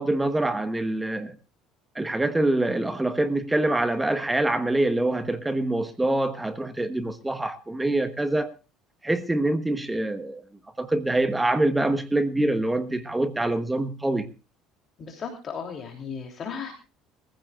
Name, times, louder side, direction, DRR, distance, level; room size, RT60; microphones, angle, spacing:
voice 1, 0.0-1.3 1.9-8.5 9.0-10.4 10.8-14.3, right 2 dB, 10° right, 1.2 m, -25 dB
voice 2, 15.0-16.7, left 6 dB, 35° left, 3.1 m, -35 dB
23.0 x 15.5 x 2.4 m
cardioid pair, 135°, 0 cm